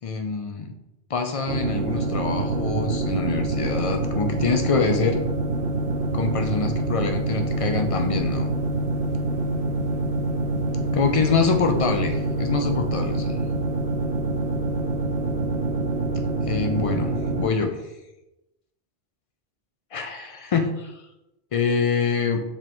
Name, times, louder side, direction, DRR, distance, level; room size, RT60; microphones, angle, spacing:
voice 1, 0.0-0.7 1.1-5.2 6.1-8.5 10.9-13.4 16.5-17.8 19.9-21.0 21.5-22.4, left 5 dB, 55° left, 4 dB, 0.3 m, -25 dB
sound 1, 1.5-17.5, right 2 dB, 65° right, 0.7 m, -26 dB
4.9 x 3.6 x 3.0 m, 0.93 s
omnidirectional pair, 1.1 m